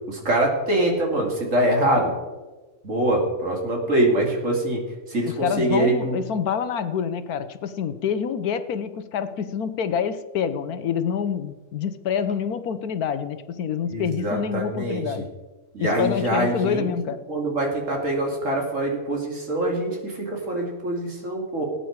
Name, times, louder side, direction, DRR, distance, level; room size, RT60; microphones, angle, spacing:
voice 1, 0.1-2.1 2.8-4.8 5.1-6.2 13.9-15.0 15.7-16.9 17.3-21.6, right 1 dB, 55° right, 0 dB, 3.2 m, -24 dB
voice 2, 5.2-15.3 15.8-17.2, left 7 dB, 75° left, 12 dB, 1.4 m, -27 dB
18.5 x 9.4 x 4.7 m, 1.2 s
omnidirectional pair, 1.6 m